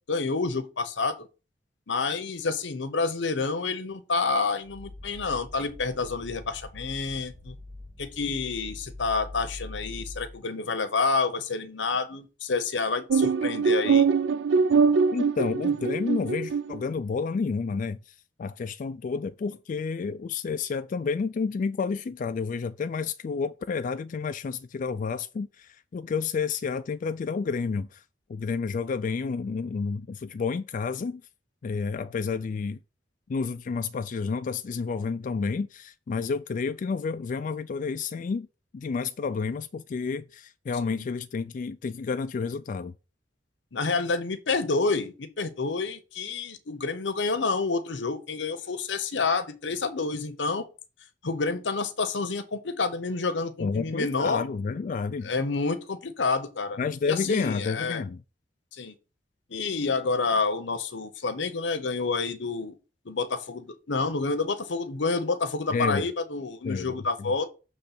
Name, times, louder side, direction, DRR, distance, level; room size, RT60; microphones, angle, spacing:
voice 1, 0.1-1.3 1.9-7.5 8.0-14.1 40.8-41.1 43.7-50.7 51.2-54.4 55.2-56.8 57.0-58.0 58.7-58.9 59.5-62.8 63.0-67.5, left 4 dB, 85° left, 0.9 m, -29 dB
sound 1, 4.6-10.4, left 2 dB, 35° right, 4.5 m, -43 dB
sound 2, 13.1-16.8, right 5 dB, 85° right, 0.4 m, -23 dB
voice 2, 15.1-28.0 28.3-31.2 31.6-32.8 33.3-38.5 38.7-42.9 53.6-55.3 56.8-58.2 65.7-66.1 66.6-67.0, left 5 dB, 45° left, 0.3 m, -30 dB
6.8 x 3.2 x 5.8 m
head